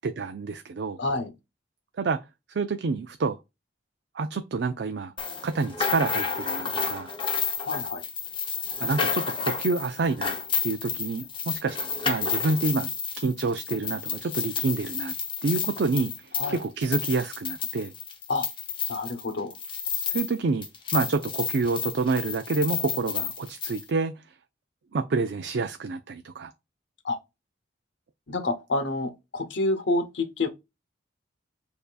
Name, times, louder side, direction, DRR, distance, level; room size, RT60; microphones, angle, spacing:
voice 1, 0.0-1.0 2.0-2.2 2.5-3.4 4.1-5.1 5.4-7.1 8.8-10.4 10.6-12.9 13.2-15.1 15.4-17.9 20.1-20.7 20.9-24.2 24.9-26.5, right 4 dB, 65° right, 0.4 m, -28 dB
voice 2, 1.0-1.3 7.6-8.0 16.4-16.6 18.3-18.5 18.9-19.5 27.0-27.2 28.3-30.5, left 2 dB, 70° left, 0.9 m, -28 dB
sound 1, 5.2-20.4 20.6-23.8, left 6 dB, 30° left, 0.8 m, -31 dB
6.7 x 2.7 x 2.4 m
head